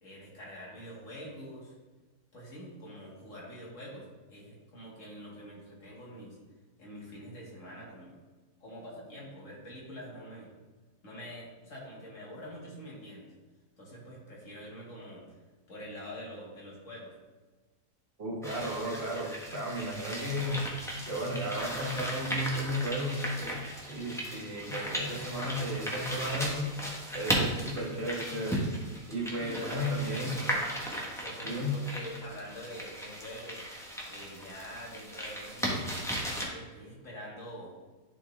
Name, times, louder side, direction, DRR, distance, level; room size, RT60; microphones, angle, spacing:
voice 1, 0.0-1.8 2.3-6.4 6.8-8.2 8.6-10.5 11.0-13.3 13.8-15.4 15.7-17.1 29.3-30.5 31.2-33.6 34.1-35.9 36.5-37.7, equal, 50° left, -5 dB, 2.5 m, -45 dB
voice 2, 18.2-20.7 21.0-23.6 23.9-26.8 27.1-28.7 29.1-30.4 31.4-31.9, equal, 40° right, -2 dB, 1.7 m, -34 dB
sound 1, 18.4-36.4, equal, ahead, 1.0 m, -36 dB
11.0 x 4.2 x 3.4 m, 1.3 s
omnidirectional pair, 1.8 m